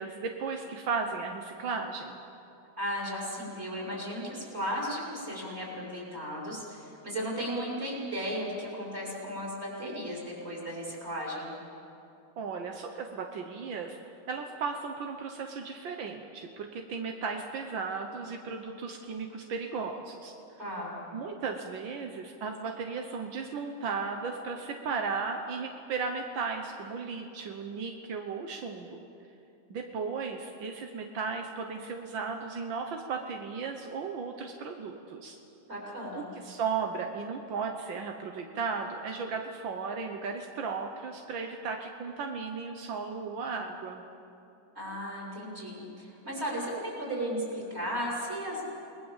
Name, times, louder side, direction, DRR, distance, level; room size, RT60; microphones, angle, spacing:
voice 1, 0.0-2.2 12.4-14.0 14.3-20.3 21.1-29.0 29.7-35.4 36.2-44.0, right 5 dB, 85° right, 3 dB, 1.9 m, -35 dB
voice 2, 2.8-11.5 20.6-21.0 35.7-36.2 44.7-48.6, equal, 35° right, -4 dB, 6.7 m, -35 dB
29.0 x 20.0 x 7.4 m, 2.8 s
omnidirectional pair, 2.0 m